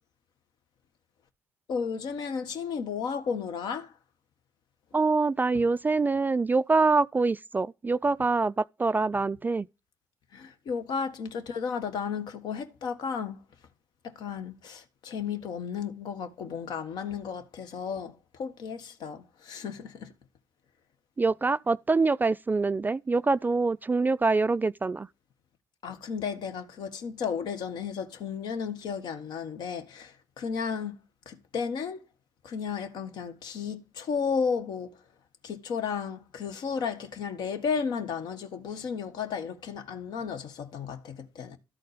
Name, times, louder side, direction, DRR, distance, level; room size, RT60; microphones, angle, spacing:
voice 1, 1.7-3.9 10.3-13.4 14.0-20.1 25.8-31.0 31.2-32.0 32.4-35.0 35.4-41.6, left 6 dB, 65° left, 1.6 m, -33 dB
voice 2, 4.9-9.7 21.2-25.1, right 3 dB, 25° right, 0.4 m, -25 dB
12.5 x 4.3 x 5.0 m
hypercardioid pair, 45°, 8 cm